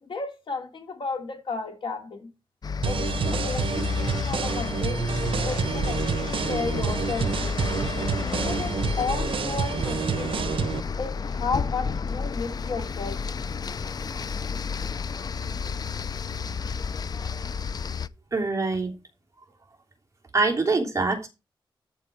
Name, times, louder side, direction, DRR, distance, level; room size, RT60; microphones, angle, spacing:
voice 1, 0.0-2.3 2.8-5.0 5.4-7.6 8.2-10.4 11.0-13.2, left 4 dB, 70° left, 2.8 m, -33 dB
sound 1, 2.6-18.1, left 5 dB, 50° left, 0.4 m, -31 dB
sound 2, 2.8-10.8, right 6 dB, 80° right, 0.8 m, -28 dB
voice 2, 18.3-18.9 20.3-21.3, right 3 dB, 35° right, 2.9 m, -24 dB
13.5 x 4.6 x 4.5 m
wide cardioid pair, 135°, 9 cm